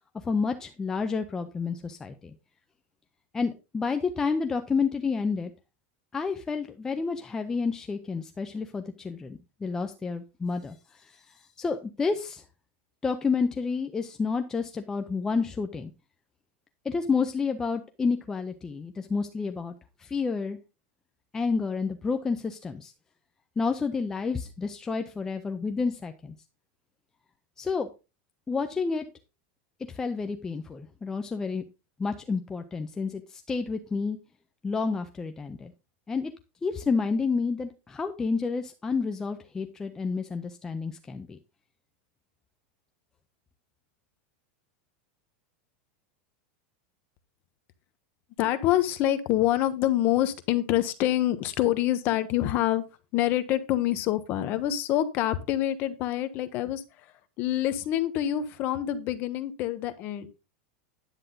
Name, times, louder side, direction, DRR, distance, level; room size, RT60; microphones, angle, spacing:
voice 1, 0.2-2.3 3.3-5.5 6.1-12.4 13.0-15.9 16.8-19.7 20.0-20.6 21.3-22.9 23.6-26.3 27.6-27.9 28.5-29.1 29.9-31.6 32.0-34.2 34.6-35.7 36.1-36.3 36.6-41.4, left 4 dB, 10° left, 6 dB, 0.5 m, -30 dB
voice 2, 48.4-52.8 53.1-56.8 57.4-60.3, left 13 dB, 30° left, 12 dB, 0.9 m, -26 dB
10.0 x 8.0 x 3.8 m, 0.29 s
supercardioid pair, 175°, 6 cm